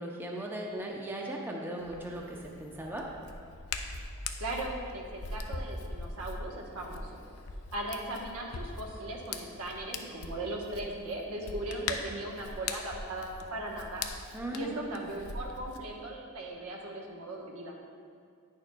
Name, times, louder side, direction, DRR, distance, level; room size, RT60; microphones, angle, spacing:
voice 1, 0.0-3.1 14.3-15.1, right 1 dB, 10° right, -1 dB, 0.6 m, -38 dB
Hands, 1.8-15.8, left 4 dB, 75° left, 0.5 m, -41 dB
voice 2, 4.4-7.1 7.7-14.1 14.5-17.7, right 1 dB, 85° right, -1 dB, 1.0 m, -38 dB
9.8 x 6.5 x 2.2 m, 2.2 s
head